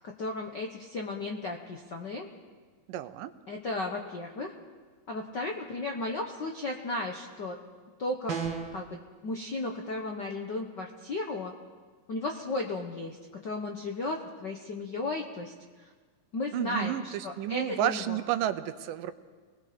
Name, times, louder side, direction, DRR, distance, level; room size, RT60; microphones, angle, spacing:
voice 1, 0.2-2.3 3.5-4.5 5.1-7.6 8.0-8.4 8.7-11.5 12.1-13.2 13.4-15.5 15.8-15.9 16.3-18.2, left 2 dB, 65° left, 2 dB, 1.1 m, -34 dB
voice 2, 2.9-3.3 16.5-19.1, right 12 dB, 85° right, 11 dB, 2.4 m, -31 dB
sound 1, 8.3-8.8, right 6 dB, 45° right, 2.0 m, -32 dB
29.5 x 20.5 x 5.1 m, 1.4 s
omnidirectional pair, 3.8 m